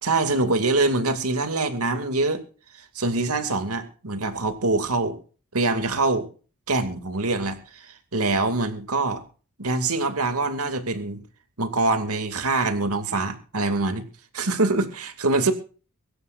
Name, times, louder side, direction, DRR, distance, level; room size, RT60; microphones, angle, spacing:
voice 1, 0.0-2.4 2.7-5.2 5.5-6.3 6.7-9.2 9.6-11.2 11.6-14.0 14.3-15.5, right 3 dB, 85° right, 7 dB, 2.5 m, -24 dB
24.0 x 13.0 x 2.6 m, 0.38 s
head